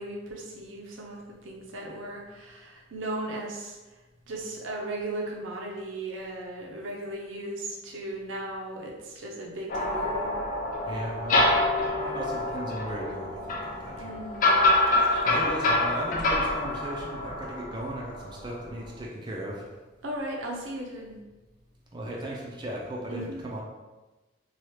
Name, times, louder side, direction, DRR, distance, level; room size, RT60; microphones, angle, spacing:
voice 1, 0.0-3.8 4.3-10.3 14.0-14.5 15.1-15.4 20.0-21.2 23.1-23.4, right 1 dB, 85° right, -1 dB, 0.6 m, -37 dB
sound 1, 9.7-18.5, left 2 dB, 45° left, 0.4 m, -26 dB
voice 2, 10.8-14.1 15.0-19.8 21.9-23.6, right 1 dB, 25° right, -3 dB, 0.4 m, -37 dB
2.9 x 2.3 x 3.2 m, 1.1 s
head